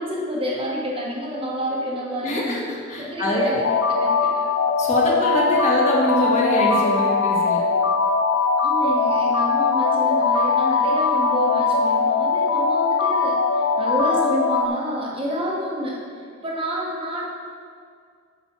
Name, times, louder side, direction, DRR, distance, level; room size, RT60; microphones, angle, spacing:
voice 1, 0.0-2.6 3.0-3.6 3.9-4.5 8.6-16.0 16.4-17.3, equal, 25° right, -3 dB, 1.0 m, -28 dB
voice 2, 2.2-3.6 4.8-7.6, equal, 35° left, -4 dB, 1.5 m, -24 dB
sound 1, 3.6-14.7, left 4 dB, 65° left, 0.4 m, -20 dB
9.4 x 4.5 x 5.8 m, 2.2 s
head